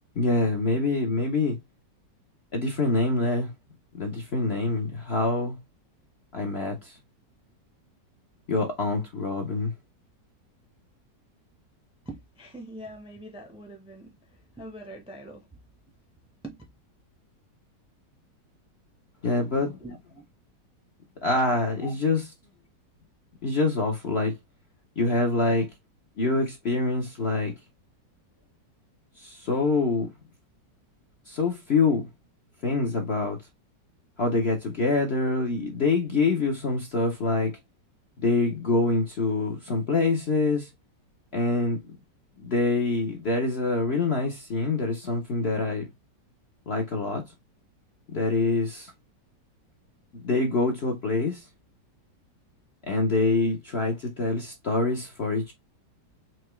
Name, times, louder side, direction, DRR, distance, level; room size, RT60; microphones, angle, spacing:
voice 1, 0.2-1.6 2.5-3.5 3.9-5.6 6.3-7.0 8.5-9.7 19.2-19.8 21.2-22.2 23.4-24.3 25.0-25.7 26.2-27.5 29.2-30.1 31.3-32.1 32.6-33.4 34.2-37.5 38.2-40.7 41.3-42.0 42.4-45.9 46.7-47.2 48.1-48.9 50.1-51.5 52.9-55.5, left 3 dB, 50° left, 0.9 m, -25 dB
voice 2, 12.0-15.6 16.4-16.6 19.8-20.2 21.8-21.9, right 1 dB, 5° right, 0.7 m, -43 dB
4.5 x 2.8 x 3.0 m
omnidirectional pair, 1.9 m